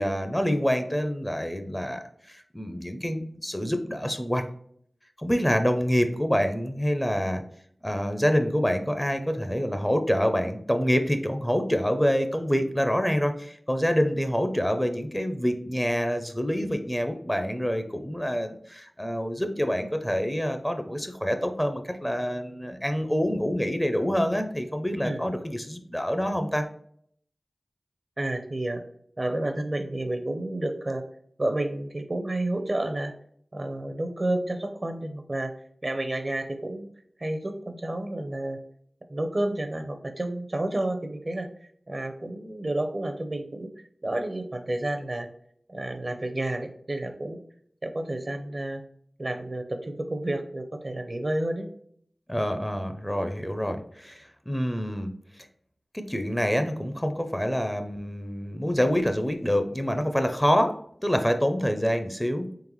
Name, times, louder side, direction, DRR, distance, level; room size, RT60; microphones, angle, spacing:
voice 1, 0.0-4.4 5.2-7.4 7.8-26.7 52.3-55.1 55.9-60.8 61.0-62.6, equal, 10° left, 7 dB, 0.5 m, -26 dB
voice 2, 28.2-28.8 29.2-31.0 31.4-33.1 33.5-35.5 35.8-36.9 37.2-38.6 39.1-41.5 41.9-43.7 44.0-45.3 45.7-47.4 47.8-48.8 49.2-51.7, right 1 dB, 45° right, 6 dB, 0.6 m, -30 dB
3.8 x 3.3 x 3.0 m, 0.64 s
wide cardioid pair, 50°, 0 cm